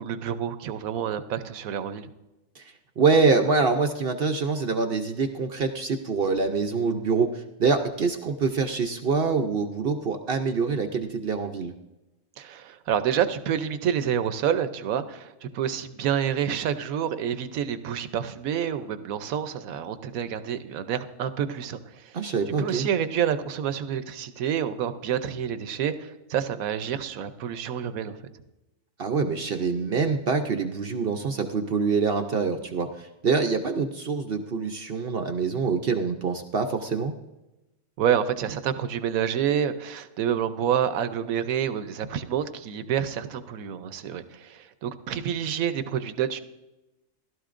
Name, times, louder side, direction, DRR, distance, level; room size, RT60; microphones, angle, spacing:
voice 1, 0.0-2.1 12.4-22.2 22.6-28.2 38.0-46.4, right 9 dB, 80° right, 11 dB, 1.1 m, -28 dB
voice 2, 3.0-11.7 22.1-22.9 29.0-37.1, right 4 dB, 55° right, 6 dB, 0.7 m, -25 dB
15.5 x 12.5 x 2.5 m, 0.99 s
omnidirectional pair, 1.5 m